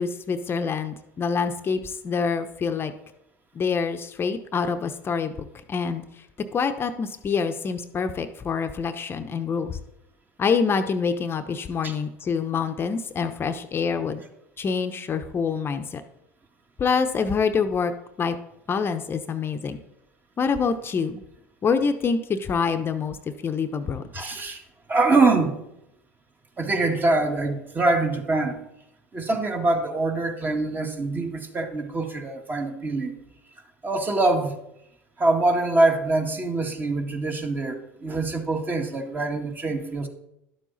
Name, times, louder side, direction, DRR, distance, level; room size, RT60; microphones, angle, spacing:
voice 1, 0.0-2.9 3.5-5.3 5.7-6.0 6.5-9.8 10.4-14.2 14.6-16.0 16.8-17.9 18.2-18.4 18.7-19.8 20.4-21.2 21.6-23.2 23.4-24.0, left 5 dB, 30° left, 8 dB, 0.8 m, -26 dB
voice 2, 24.1-24.6 24.9-25.6 26.6-28.6 29.1-33.1 33.8-34.6 35.2-40.1, right 2 dB, 25° right, 4 dB, 1.8 m, -24 dB
11.5 x 7.4 x 4.0 m, 0.83 s
hypercardioid pair, 85°, 7 cm